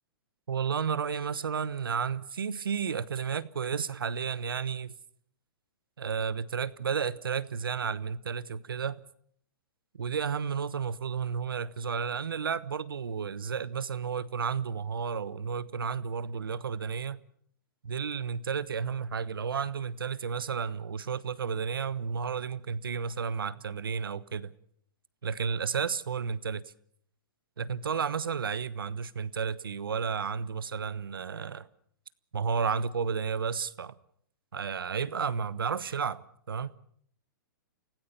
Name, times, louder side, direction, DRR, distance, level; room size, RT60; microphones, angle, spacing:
voice 1, 0.5-4.9 6.0-9.0 9.9-17.2 17.8-24.5 25.2-26.6 27.6-31.7 32.3-33.9 34.5-36.7, right 6 dB, 90° right, 1.1 m, -32 dB
28.0 x 17.5 x 7.1 m
hypercardioid pair, 135°, 11 cm